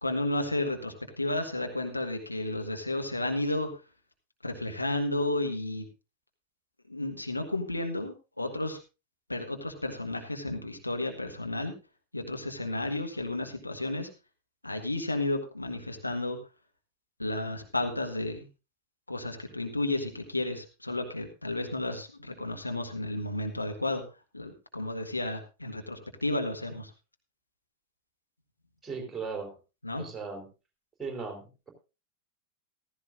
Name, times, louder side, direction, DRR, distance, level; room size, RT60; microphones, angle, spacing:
voice 1, 0.0-3.7 4.4-5.9 6.9-8.8 9.3-11.7 12.1-14.1 14.6-16.4 17.2-18.5 19.1-24.0 24.3-26.9 29.8-30.1, left 2 dB, 85° left, 5 dB, 1.4 m, -32 dB
voice 2, 28.8-29.5 30.0-30.4 31.0-31.7, right 4 dB, 10° right, 2 dB, 3.9 m, -37 dB
15.0 x 14.0 x 2.6 m, 0.29 s
figure-of-eight pair, 90°, 0 cm